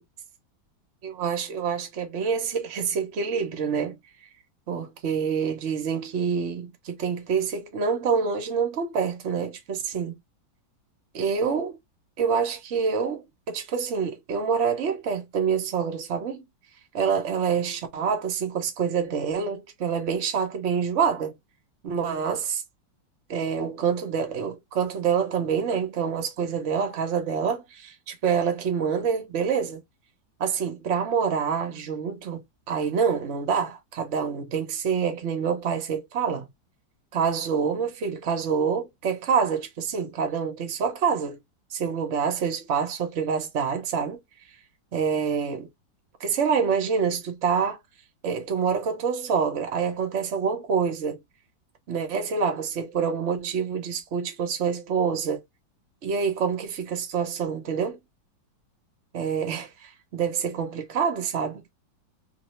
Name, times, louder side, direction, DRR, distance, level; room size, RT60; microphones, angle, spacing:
voice 1, 1.0-4.0 4.7-10.2 11.1-11.8 12.2-16.4 16.9-21.4 21.8-22.6 23.3-29.8 30.4-36.5 37.1-41.4 41.7-44.2 44.9-45.7 46.2-47.8 48.2-51.2 51.9-55.4 56.0-58.0 59.1-61.8, right 6 dB, 45° right, 1.1 m, -26 dB
2.8 x 2.6 x 3.1 m
omnidirectional pair, 2.1 m